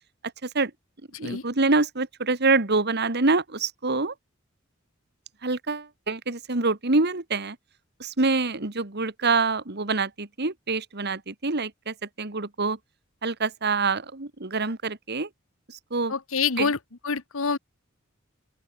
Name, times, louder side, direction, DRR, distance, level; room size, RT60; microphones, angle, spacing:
voice 1, 1.2-4.1 5.4-7.6 8.0-12.8 13.2-15.3 15.7-16.1 16.6-16.7, right 3 dB, 55° right, 2.0 m, -26 dB
voice 2, 16.1-16.8 17.0-17.6, left 5 dB, 75° left, 1.2 m, -26 dB
open air
head